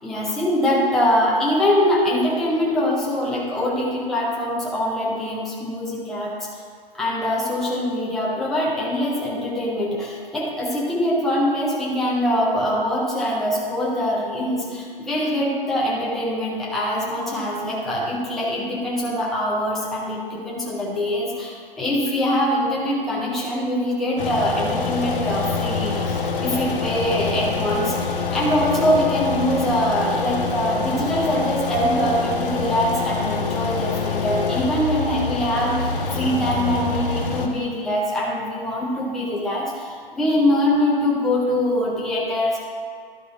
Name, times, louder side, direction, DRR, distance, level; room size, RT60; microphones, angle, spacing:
voice 1, 0.0-6.5 6.9-42.6, left 1 dB, ahead, -5 dB, 0.4 m, -23 dB
sound 1, 24.2-37.5, left 4 dB, 65° left, 1.1 m, -26 dB
11.5 x 4.9 x 3.5 m, 2.1 s
figure-of-eight pair, 135°, 29 cm